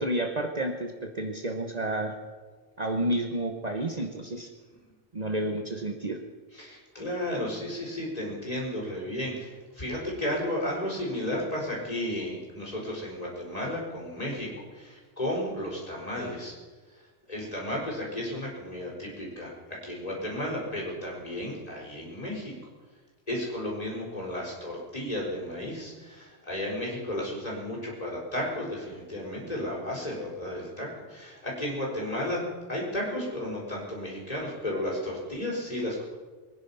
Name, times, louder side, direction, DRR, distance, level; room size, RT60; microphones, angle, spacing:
voice 1, 0.0-2.2 2.8-4.5 5.1-6.2, right 1 dB, 40° right, 4 dB, 1.3 m, -30 dB
voice 2, 6.5-16.5 16.9-17.0 17.3-22.5 23.3-32.4 32.7-36.0, left 1 dB, 35° left, -4 dB, 5.2 m, -33 dB
23.0 x 10.5 x 5.7 m, 1.3 s
omnidirectional pair, 1.1 m